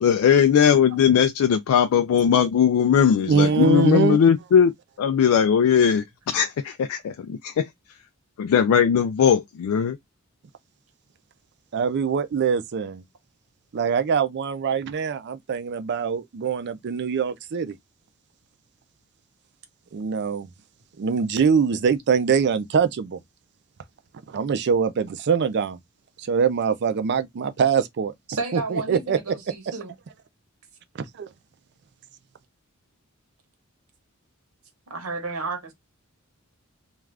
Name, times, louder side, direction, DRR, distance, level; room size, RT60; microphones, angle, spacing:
voice 1, 0.0-4.7 5.0-7.7 8.4-10.0, left 8 dB, 75° left, 0.3 m, -19 dB
voice 2, 3.3-4.2 11.7-13.0 13.7-17.7 19.9-20.5 21.0-23.2 24.3-25.8 26.2-28.1 28.5-29.2 31.2-31.3, right 6 dB, 55° right, 0.4 m, -23 dB
voice 3, 28.3-29.9 34.9-35.7, right 3 dB, 85° right, 1.0 m, -32 dB
2.4 x 2.3 x 3.2 m
head